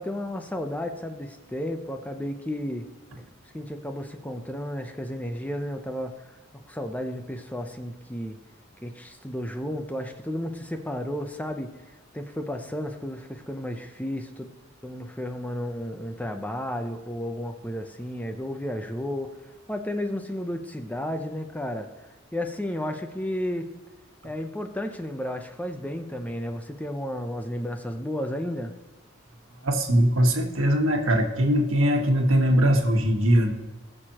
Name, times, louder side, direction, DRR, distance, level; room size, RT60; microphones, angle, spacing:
voice 1, 0.0-2.9 3.5-6.1 6.7-8.4 8.8-11.7 12.1-14.5 14.8-19.3 19.7-21.9 22.3-23.7 24.2-28.7, left 1 dB, 10° left, 6 dB, 0.7 m, -32 dB
voice 2, 29.6-33.5, equal, 85° right, 3 dB, 1.4 m, -21 dB
19.0 x 6.7 x 3.0 m, 1.1 s
head